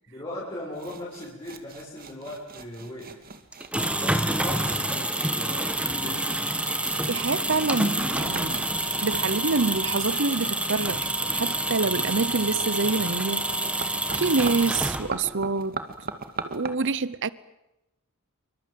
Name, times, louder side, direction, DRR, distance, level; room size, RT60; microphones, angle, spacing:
voice 1, 0.1-3.2 4.0-6.5, left 1 dB, 25° left, 7.0 m, -38 dB
sound 1, 0.7-16.7, right 4 dB, 45° right, 2.2 m, -41 dB
sound 2, 3.5-15.4, right 1 dB, 5° right, 1.9 m, -27 dB
voice 2, 6.7-8.7 9.0-13.4 13.8-15.8 16.4-17.3, right 3 dB, 60° right, 0.9 m, -27 dB
29.0 x 24.5 x 7.7 m
head